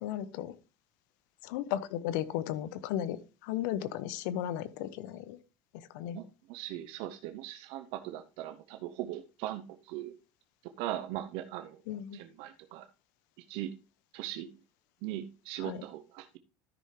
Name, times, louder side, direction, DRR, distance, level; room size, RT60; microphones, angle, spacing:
voice 1, 0.0-0.5 1.4-5.4 5.9-6.2 11.9-12.2 15.6-15.8, left 11 dB, 85° left, 0.9 m, -35 dB
voice 2, 6.1-10.2 10.8-11.8 12.1-12.9 13.5-13.7 14.1-14.5 15.0-16.4, right 13 dB, 70° right, 0.8 m, -39 dB
13.0 x 5.7 x 3.3 m
cardioid pair, 130°, 10 cm